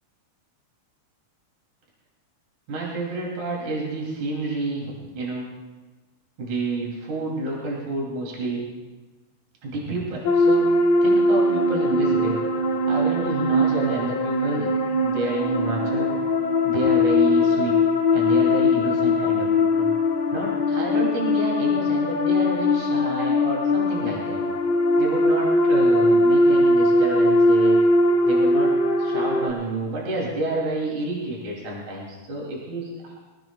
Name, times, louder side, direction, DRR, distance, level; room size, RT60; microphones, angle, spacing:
voice 1, 2.7-5.5 6.4-8.6 9.6-10.7 11.0-12.4 12.9-14.7 15.0-16.1 16.6-17.7 18.1-19.9 20.3-24.4 25.0-27.8 28.3-33.1, right 2 dB, 60° right, -3 dB, 4.4 m, -29 dB
sound 1, 10.2-29.5, left 2 dB, 75° left, 0.9 m, -20 dB
23.5 x 18.0 x 2.4 m, 1.2 s
omnidirectional pair, 3.9 m